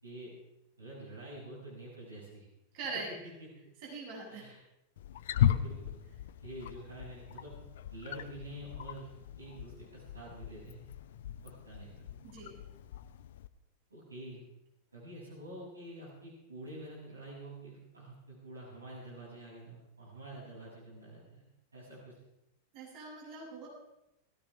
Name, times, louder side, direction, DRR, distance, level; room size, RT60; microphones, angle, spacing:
voice 1, 0.8-2.5 3.2-3.5 4.3-4.6 5.3-6.0 6.4-7.5 7.9-9.1 9.4-10.8 11.4-12.1 13.9-14.4 14.9-21.4 21.7-22.1, right 1 dB, 75° right, -5 dB, 6.8 m, -47 dB
voice 2, 2.7-3.1 3.8-4.4 12.3-12.6 22.7-23.7, right 4 dB, 45° right, -4 dB, 7.5 m, -42 dB
Wild animals, 5.0-13.5, left 10 dB, 55° left, 0.6 m, -37 dB
20.5 x 16.5 x 3.5 m, 0.87 s
figure-of-eight pair, 90°, 0 cm